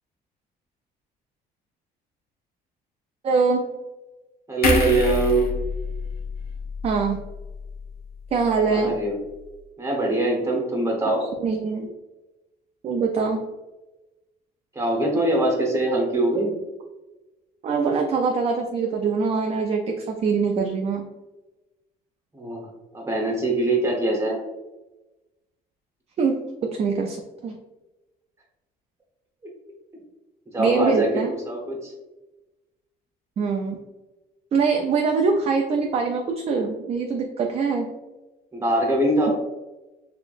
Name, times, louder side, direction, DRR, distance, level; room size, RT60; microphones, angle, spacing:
voice 1, 3.2-3.6 6.8-7.2 8.3-9.0 11.4-11.9 12.8-13.4 17.6-21.1 26.2-26.4 26.7-27.2 27.4-27.6 30.6-31.3 33.4-33.8 34.5-37.9, right 4 dB, 35° right, 2 dB, 0.4 m, -23 dB
voice 2, 4.5-5.5 8.7-9.1 9.8-11.2 14.7-16.5 22.3-22.6 22.9-24.4 29.4-29.5 30.5-31.9 38.5-39.3, right 2 dB, 15° right, -1 dB, 1.0 m, -23 dB
sound 1, 4.6-8.0 8.3-8.5, left 3 dB, 70° left, 0.8 m, -27 dB
3.8 x 2.9 x 2.5 m, 1.1 s
cardioid pair, 110°, 17 cm